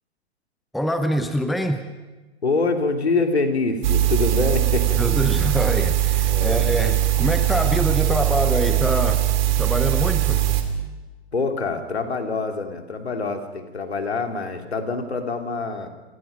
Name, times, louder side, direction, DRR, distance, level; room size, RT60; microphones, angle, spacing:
voice 1, 0.7-1.8 5.0-9.2 9.6-10.5, equal, ahead, 9 dB, 0.8 m, -25 dB
voice 2, 2.4-5.0 6.2-6.6 11.3-15.9, left 3 dB, 70° left, 5 dB, 3.0 m, -25 dB
sound 1, 3.8-10.6, right 13 dB, 45° right, 2.7 m, -20 dB
29.0 x 18.0 x 5.2 m, 1.2 s
figure-of-eight pair, 115°, 33 cm